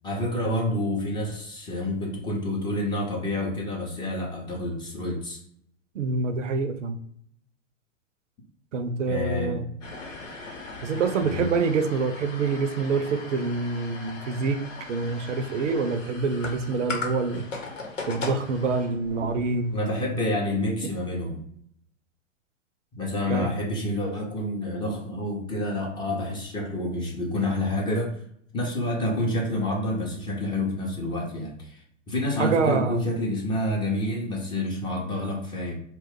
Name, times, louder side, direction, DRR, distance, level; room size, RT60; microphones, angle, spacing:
voice 1, 0.0-5.4 9.1-9.6 11.2-11.5 19.7-21.4 22.9-28.2 28.5-35.8, left 1 dB, 10° left, -1 dB, 0.5 m, -28 dB
voice 2, 5.9-7.0 8.7-9.6 10.8-17.5 18.1-19.8 20.8-20.9 23.3-23.5 32.4-33.0, right 4 dB, 75° right, 10 dB, 0.5 m, -26 dB
sound 1, 9.8-20.2, left 3 dB, 75° left, 0.9 m, -39 dB
2.9 x 2.2 x 3.5 m, 0.67 s
figure-of-eight pair, 105°, 38 cm